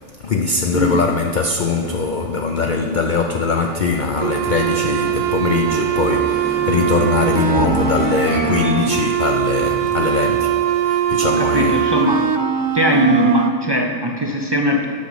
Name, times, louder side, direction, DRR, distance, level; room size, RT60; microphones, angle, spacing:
voice 1, 0.2-11.8, left 4 dB, 55° left, 3 dB, 0.5 m, -21 dB
sound 1, 1.4-10.4, right 1 dB, 10° left, 0.9 m, -32 dB
sound 2, 4.2-13.5, right 10 dB, 75° right, 0.9 m, -21 dB
voice 2, 11.2-12.3 12.7-14.9, equal, 40° right, 1 dB, 0.3 m, -19 dB
8.6 x 5.6 x 6.1 m, 2.5 s
omnidirectional pair, 1.3 m